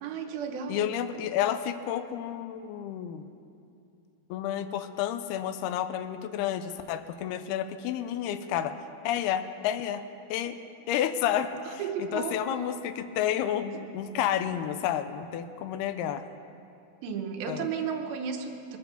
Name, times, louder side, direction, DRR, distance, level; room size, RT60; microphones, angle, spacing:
voice 1, 0.0-0.9 11.7-12.9 17.0-18.8, right 6 dB, 75° right, 4 dB, 2.7 m, -34 dB
voice 2, 0.7-3.2 4.3-8.8 9.0-10.0 10.3-10.6 10.9-16.2 17.5-17.7, left 10 dB, 85° left, 10 dB, 2.6 m, -30 dB
21.5 x 8.1 x 7.0 m, 2.6 s
omnidirectional pair, 4.6 m